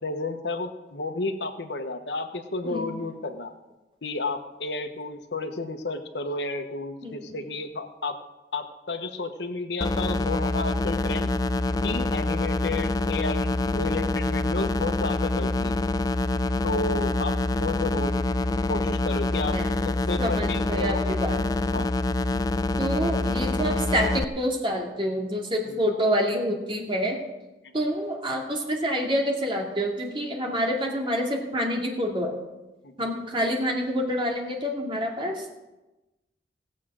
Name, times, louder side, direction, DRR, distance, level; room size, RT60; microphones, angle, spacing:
voice 1, 0.0-3.5 4.0-8.2 8.5-11.3 11.8-15.8 16.6-18.2 18.7-19.6 19.8-21.0 21.7-21.9 25.7-25.8 27.6-27.7 32.8-33.1, left 3 dB, 75° left, 7 dB, 1.1 m, -32 dB
sound 1, 9.8-24.2, left 2 dB, 20° left, 0.3 m, -26 dB
voice 2, 20.2-21.6 22.8-27.2 27.7-32.4 33.0-35.4, equal, 30° right, 0 dB, 2.4 m, -27 dB
18.0 x 7.5 x 6.2 m, 1.0 s
head